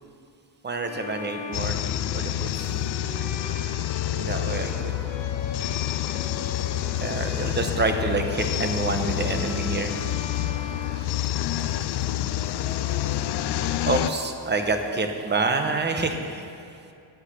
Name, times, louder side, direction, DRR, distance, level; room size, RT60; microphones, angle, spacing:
voice 1, 0.6-1.8 2.1-2.7 4.1-4.9 7.0-9.9 11.1-11.2 13.9-16.5, right 3 dB, 25° right, 5 dB, 0.8 m, -27 dB
Bowed string instrument, 0.8-11.8, left 4 dB, 85° left, 1.5 m, -40 dB
sound 1, 1.5-14.1, left 12 dB, 65° left, 0.5 m, -28 dB
9.8 x 8.9 x 6.7 m, 2.5 s
wide cardioid pair, 170°, 43 cm